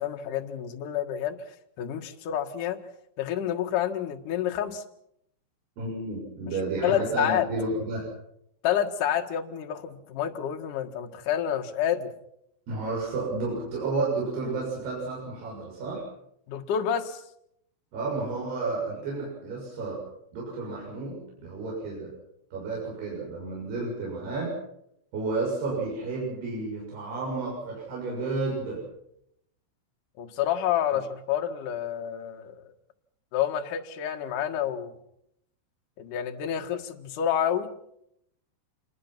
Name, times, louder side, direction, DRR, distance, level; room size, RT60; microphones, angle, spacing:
voice 1, 0.0-1.4 1.8-2.8 3.2-4.8 6.5-6.6 6.8-7.5 8.6-12.1 16.5-17.2 30.2-32.7 33.3-34.9 36.0-37.7, left 10 dB, 55° left, 4 dB, 2.6 m, -28 dB
voice 2, 5.8-8.1 12.7-16.0 17.9-20.0 20.3-22.1 22.5-24.5 25.1-28.8, right 3 dB, 55° right, -4 dB, 8.9 m, -31 dB
27.0 x 22.0 x 5.9 m, 0.76 s
omnidirectional pair, 5.5 m